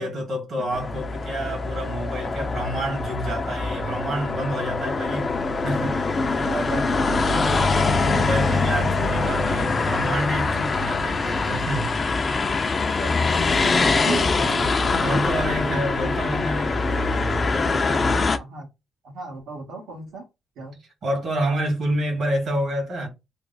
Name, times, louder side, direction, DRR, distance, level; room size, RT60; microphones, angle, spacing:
voice 1, 0.0-5.3 5.6-6.0 8.0-11.9 15.0-18.3 21.0-23.1, right 1 dB, 60° right, 1.7 m, -28 dB
sound 1, 0.7-18.4, left 3 dB, 35° left, 0.5 m, -23 dB
voice 2, 6.3-10.0 13.0-16.2 18.3-18.7 19.0-20.2 20.6-20.8, right 3 dB, 80° right, 1.5 m, -36 dB
3.2 x 2.1 x 4.0 m
cardioid pair, 110°, 0 cm